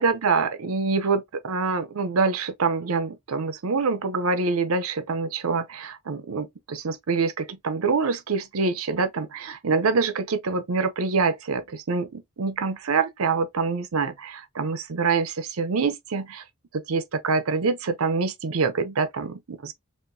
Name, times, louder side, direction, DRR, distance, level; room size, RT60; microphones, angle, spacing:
voice 1, 0.0-16.4 16.7-19.7, right 4 dB, 90° right, 0.7 m, -25 dB
4.3 x 3.0 x 2.6 m
head